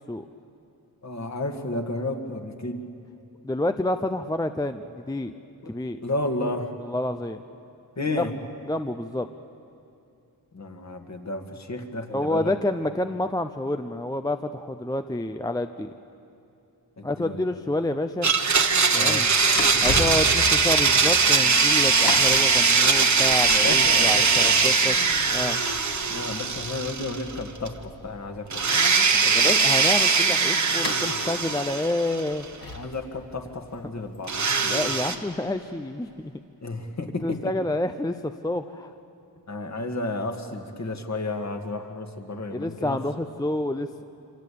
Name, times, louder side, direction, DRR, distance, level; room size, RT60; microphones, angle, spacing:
voice 1, 1.0-2.8 5.6-5.7 6.0-6.7 8.0-8.3 10.5-12.5 17.0-17.5 18.9-19.3 23.6-24.6 26.1-28.8 29.1-29.6 32.7-34.3 36.6-37.4 39.5-43.0, left 2 dB, 45° left, 4 dB, 2.1 m, -32 dB
voice 2, 3.4-5.3 5.7-6.0 6.8-7.4 8.2-8.3 8.7-9.3 12.1-15.9 17.0-18.3 18.9-19.3 19.8-25.0 25.3-25.6 29.3-32.5 34.6-36.3 37.2-38.9 42.5-44.0, left 1 dB, 10° left, 8 dB, 0.6 m, -28 dB
Domestic sounds home sounds, 18.2-27.4 27.7-27.8 28.5-32.4 34.3-35.2, right 5 dB, 45° right, 1.4 m, -21 dB
sound 1, 18.5-35.5 36.1-36.2, left 2 dB, 65° left, 2.7 m, -37 dB
27.0 x 26.0 x 8.5 m, 2.7 s
wide cardioid pair, 120°, 38 cm